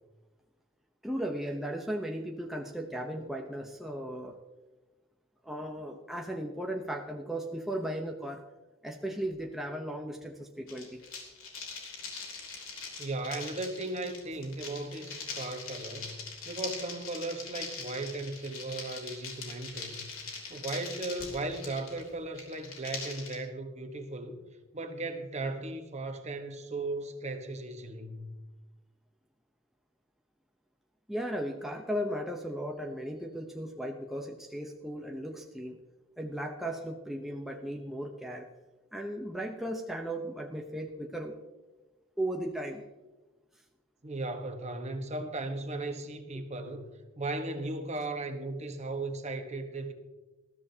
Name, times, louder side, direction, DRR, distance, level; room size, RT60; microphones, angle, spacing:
voice 1, 1.0-4.4 5.4-8.4 8.8-11.0 19.7-19.8 31.1-35.8 36.2-38.5 38.9-41.3 42.2-42.8 46.3-46.4, right 1 dB, ahead, 1 dB, 0.8 m, -36 dB
sound 1, 10.7-23.4, left 4 dB, 85° left, 3.3 m, -42 dB
voice 2, 13.0-16.1 16.5-20.1 20.5-24.4 24.7-28.3 44.0-46.8 47.2-49.9, right 2 dB, 35° right, 6 dB, 1.2 m, -36 dB
20.0 x 13.5 x 2.8 m, 1.2 s
head